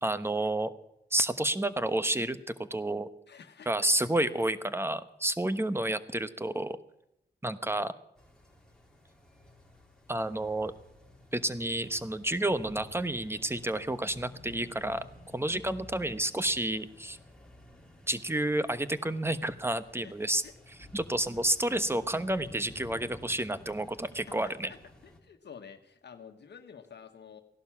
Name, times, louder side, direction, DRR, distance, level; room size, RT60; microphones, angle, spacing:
voice 1, 0.0-0.7 1.1-2.4 2.7-3.1 3.7-6.8 7.4-7.9 10.1-10.7 11.3-15.0 15.3-17.2 18.1-20.4 20.9-24.7, right 1 dB, 15° right, 12 dB, 1.1 m, -30 dB
voice 2, 3.3-4.1 4.3-4.4 20.0-20.5 24.3-24.8 25.0-27.4, left 7 dB, 75° left, 7 dB, 1.4 m, -50 dB
sound 1, 8.2-25.2, left 1 dB, 5° left, 4.0 m, -53 dB
16.5 x 12.0 x 7.3 m, 0.81 s
cardioid pair, 70°, 18 cm